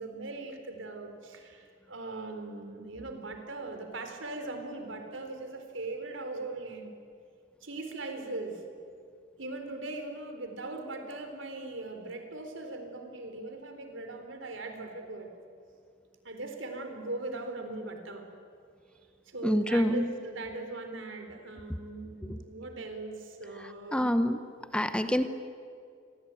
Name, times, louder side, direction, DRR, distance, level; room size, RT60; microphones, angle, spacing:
voice 1, 0.0-7.0 7.6-8.6 9.4-15.3 16.2-18.3 19.3-24.1, right 2 dB, 80° right, 5 dB, 4.0 m, -40 dB
voice 2, 19.4-20.1 23.9-24.4 24.7-25.3, equal, 5° left, 10 dB, 1.0 m, -26 dB
28.0 x 22.5 x 9.1 m, 2.4 s
head